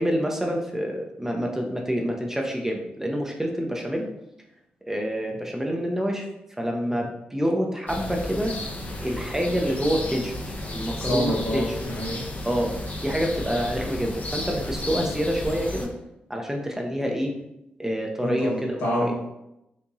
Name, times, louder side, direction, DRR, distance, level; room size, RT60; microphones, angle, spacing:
voice 1, 0.0-4.1 4.9-6.3 6.6-8.5 9.0-11.6 12.4-12.7 13.0-15.9 16.3-17.3 17.8-19.1, equal, 10° right, 1 dB, 0.7 m, -27 dB
sound 1, 7.9-15.9, left 1 dB, 40° left, 0.8 m, -33 dB
voice 2, 11.0-12.2 18.2-19.1, equal, 75° left, -5 dB, 1.5 m, -28 dB
4.6 x 2.6 x 2.7 m, 0.87 s
supercardioid pair, 45°, 4 cm